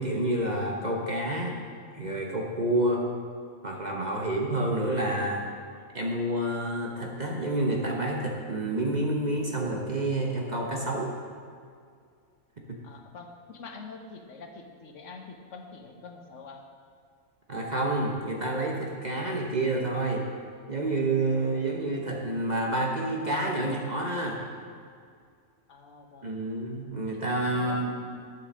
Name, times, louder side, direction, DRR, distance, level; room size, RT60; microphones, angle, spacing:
voice 1, 0.0-1.6 1.9-3.0 3.6-5.4 5.9-11.1 12.7-12.8 17.5-20.2 20.7-24.4 26.2-27.9, right 1 dB, 35° right, 0 dB, 0.9 m, -28 dB
voice 2, 12.8-16.7 21.3-21.5 25.7-26.5 27.4-27.9, left 4 dB, 65° left, 4 dB, 1.3 m, -46 dB
10.0 x 7.1 x 6.2 m, 2.2 s
omnidirectional pair, 1.4 m